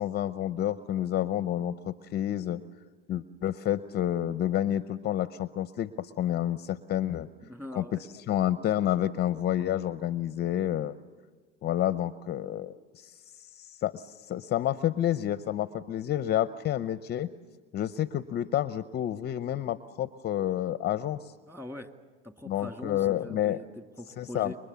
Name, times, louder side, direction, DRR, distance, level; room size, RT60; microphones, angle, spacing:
voice 1, 0.0-2.6 3.1-7.3 7.7-7.8 8.3-10.9 11.6-17.3 17.7-21.3 22.5-23.6 24.2-24.5, left 12 dB, 35° left, 14 dB, 0.7 m, -29 dB
voice 2, 7.4-8.0 21.5-21.9 22.2-24.6, left 1 dB, 5° right, 6 dB, 2.2 m, -42 dB
29.0 x 23.5 x 7.0 m, 1.4 s
hypercardioid pair, 100°, 30 cm